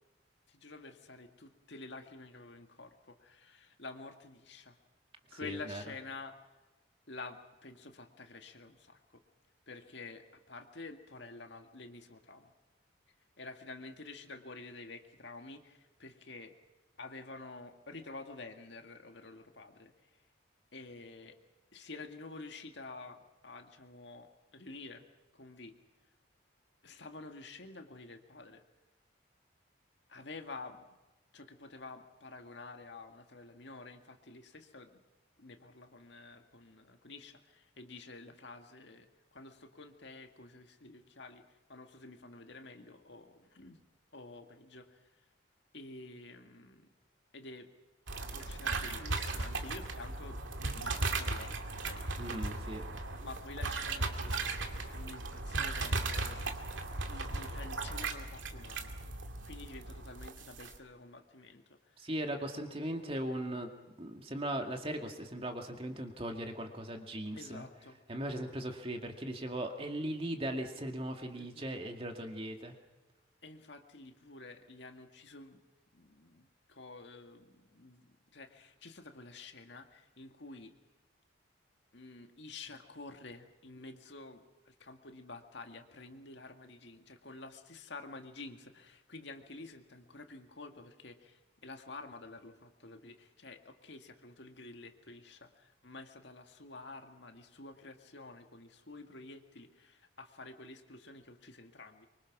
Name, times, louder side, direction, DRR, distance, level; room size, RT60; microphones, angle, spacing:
voice 1, 0.5-4.8 5.3-6.4 7.1-9.2 9.7-12.5 13.4-16.5 17.0-19.9 20.7-21.4 21.7-25.0 25.3-25.7 26.8-28.6 30.1-30.8 31.3-35.0 35.4-41.4 41.7-43.8 44.1-45.0 45.7-46.9 47.3-47.7 48.3-52.3 53.2-54.5 54.8-56.6 57.1-58.9 59.4-62.1 67.3-68.0 71.3-71.8 73.4-75.6 75.9-80.7 81.9-102.1, left 3 dB, 65° left, 5 dB, 2.0 m, -49 dB
voice 2, 5.3-5.8 52.2-52.8 62.0-63.7 64.0-67.6 68.1-72.8, right 1 dB, 30° right, 4 dB, 2.2 m, -38 dB
sound 1, 48.1-60.8, right 3 dB, 75° right, 2.4 m, -37 dB
24.5 x 24.5 x 6.1 m, 1.1 s
head